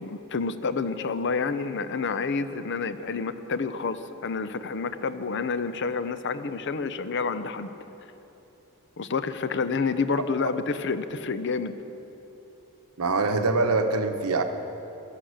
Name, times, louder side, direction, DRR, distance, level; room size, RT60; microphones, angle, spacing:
voice 1, 0.0-7.7 9.0-11.7, left 4 dB, 55° left, 12 dB, 0.6 m, -29 dB
voice 2, 13.0-14.4, right 3 dB, 90° right, 7 dB, 1.0 m, -24 dB
13.5 x 11.5 x 6.5 m, 3.0 s
head